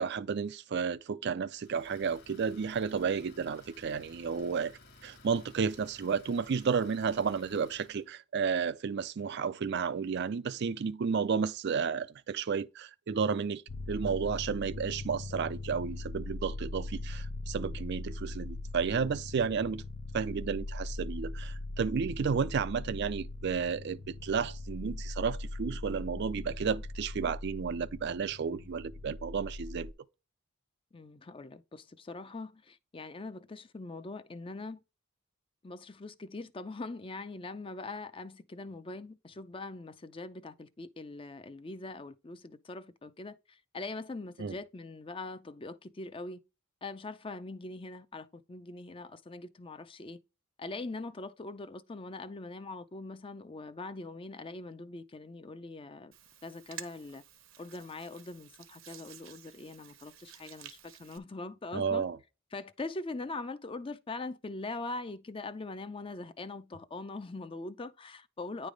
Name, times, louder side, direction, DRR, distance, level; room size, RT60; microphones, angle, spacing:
voice 1, 0.0-4.7 5.0-13.6 13.9-19.8 20.1-29.9 44.4-44.6 61.7-62.2, right 6 dB, 55° right, 0.4 m, -32 dB
Idling, 1.5-8.1, left 3 dB, 50° left, 1.5 m, -57 dB
sound 1, 13.7-29.9, left 2 dB, 80° left, 0.5 m, -40 dB
voice 2, 30.9-34.8 35.6-46.4 46.8-50.2 50.6-56.1 56.4-57.2 57.6-62.0 62.5-68.7, left 3 dB, 25° left, 0.5 m, -42 dB
Hands, 56.1-61.2, right 10 dB, 70° right, 0.9 m, -51 dB
9.8 x 3.3 x 5.1 m
head